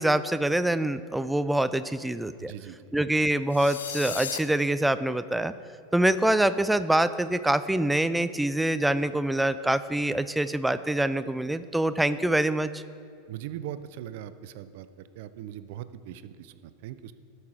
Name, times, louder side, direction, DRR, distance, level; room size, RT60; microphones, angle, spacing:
voice 1, 0.0-2.5 2.9-5.5 5.9-12.8, right 1 dB, 5° right, 13 dB, 0.3 m, -25 dB
voice 2, 2.4-2.8 13.3-14.9 15.2-17.1, right 11 dB, 65° right, 13 dB, 0.5 m, -40 dB
sound 1, 3.5-4.4, left 8 dB, 85° left, 0.5 m, -35 dB
12.5 x 5.7 x 4.9 m, 2.4 s
hypercardioid pair, 95°, 0 cm